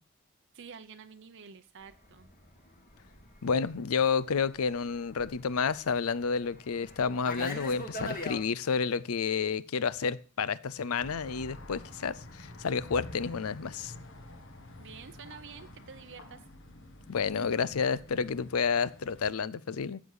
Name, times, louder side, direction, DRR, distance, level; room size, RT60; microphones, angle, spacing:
voice 1, 0.5-2.3 14.8-16.4, right 6 dB, 60° right, 0.7 m, -49 dB
Fixed-wing aircraft airplane, 1.9-8.4, left 1 dB, 40° left, 2.1 m, -43 dB
voice 2, 3.4-13.9 17.1-20.0, left 5 dB, 80° left, 0.5 m, -30 dB
sound 1, 11.0-19.3, left 1 dB, 65° left, 1.7 m, -49 dB
13.5 x 8.0 x 4.8 m
head